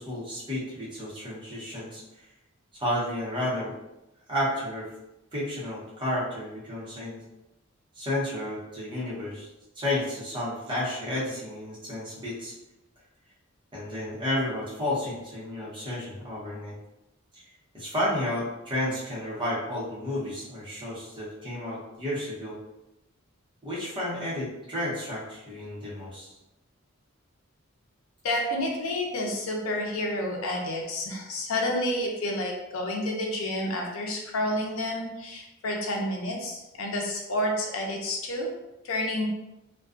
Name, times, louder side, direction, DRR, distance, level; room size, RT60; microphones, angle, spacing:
voice 1, 0.0-2.0 2.7-3.7 4.3-4.9 5.3-7.2 8.0-9.5 9.8-12.5 13.7-16.7 17.3-17.4 17.7-22.6 23.6-26.3, left 1 dB, 25° right, -7 dB, 0.9 m, -31 dB
voice 2, 28.2-38.5 38.8-39.3, left 1 dB, 75° left, 0 dB, 0.6 m, -29 dB
2.4 x 2.2 x 2.4 m, 0.93 s
head